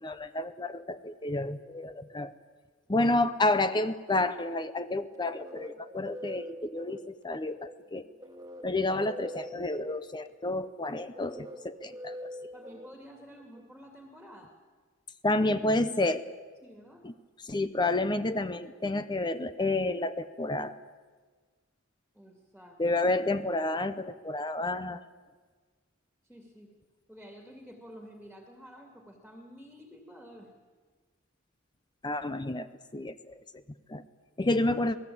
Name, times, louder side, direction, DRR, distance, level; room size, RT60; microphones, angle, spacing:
voice 1, 0.0-2.3 2.9-8.1 8.6-12.3 15.2-16.2 17.0-17.1 17.4-20.7 22.8-25.0 32.0-32.7 32.9-33.6 33.9-34.0 34.4-35.0, left 2 dB, 20° left, 12 dB, 0.7 m, -30 dB
sound 1, 4.9-13.6, equal, 15° right, 1.7 m, -45 dB
voice 2, 12.5-14.6 16.6-17.0 22.1-22.8 26.2-26.7 27.1-30.5, equal, ahead, 3 dB, 2.4 m, -50 dB
27.5 x 18.5 x 8.6 m, 1.5 s
head